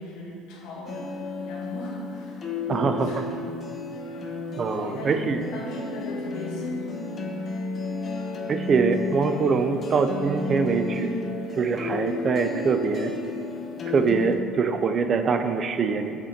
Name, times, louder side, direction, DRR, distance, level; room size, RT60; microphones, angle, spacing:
voice 1, 0.0-3.2 4.0-4.2 4.7-7.2 7.6-7.7, left 2 dB, 75° left, -2 dB, 1.3 m, -38 dB
sound 1, 0.9-14.3, left 3 dB, 40° left, 0.8 m, -32 dB
voice 2, 2.7-3.1 4.6-5.4 8.5-11.3 11.6-13.1 13.9-16.2, right 5 dB, 45° right, 8 dB, 0.4 m, -24 dB
5.6 x 4.2 x 4.3 m, 2.4 s
supercardioid pair, 80°, 0 cm